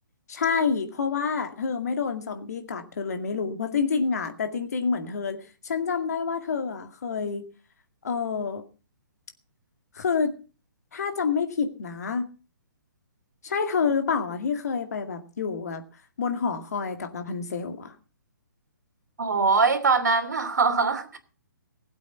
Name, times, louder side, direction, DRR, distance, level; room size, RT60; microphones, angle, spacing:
voice 1, 0.3-7.5 8.0-8.6 9.9-10.3 10.9-12.3 13.4-15.8 16.2-17.9, left 5 dB, 50° left, 2.1 m, -28 dB
voice 2, 19.2-21.2, right 4 dB, 60° right, 3.0 m, -22 dB
20.0 x 8.3 x 5.7 m
figure-of-eight pair, 130°, 11 cm